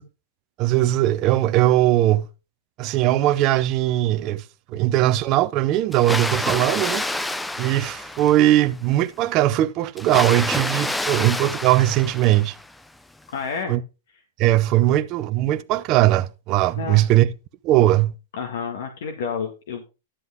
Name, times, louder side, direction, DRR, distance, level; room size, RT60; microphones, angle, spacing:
voice 1, 0.6-2.3 2.8-4.4 4.7-7.0 7.6-12.6 13.7-13.8 14.4-17.3 17.6-18.1, right 14 dB, 35° right, 0.6 m, -19 dB
Water, 5.9-8.7 10.0-12.8, left 1 dB, 5° left, 0.4 m, -28 dB
voice 2, 13.3-13.8 16.8-17.0 18.3-19.8, left 6 dB, 75° left, 1.9 m, -29 dB
11.0 x 7.8 x 3.6 m
supercardioid pair, 150°, 0 cm